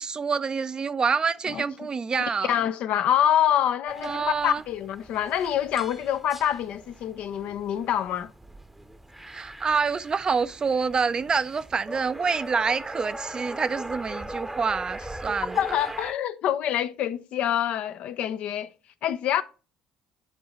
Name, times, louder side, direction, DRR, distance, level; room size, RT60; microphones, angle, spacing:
voice 1, 0.0-2.6 4.0-4.6 9.3-15.8, right 5 dB, 35° right, 0.5 m, -27 dB
voice 2, 2.5-8.3 15.5-18.7 19.0-19.4, left 10 dB, 60° left, 0.6 m, -26 dB
sound 1, 3.9-16.1, right 1 dB, 10° right, 0.8 m, -40 dB
10.0 x 3.9 x 3.1 m
hypercardioid pair, 55°, 2 cm